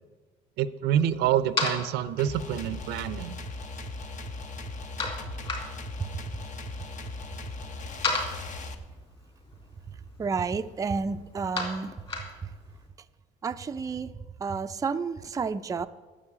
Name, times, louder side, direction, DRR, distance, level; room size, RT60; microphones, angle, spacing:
voice 1, 0.6-3.3, right 10 dB, 85° right, 15 dB, 0.6 m, -27 dB
sound 1, 0.9-12.9, left 3 dB, 30° left, 3.6 m, -37 dB
sound 2, 2.2-8.7, left 2 dB, 45° left, 1.1 m, -38 dB
voice 2, 10.2-11.9 13.4-14.1 14.4-15.9, right 5 dB, 20° right, 9 dB, 0.4 m, -30 dB
9.8 x 7.6 x 8.7 m, 1.3 s
cardioid pair, 110°, 17 cm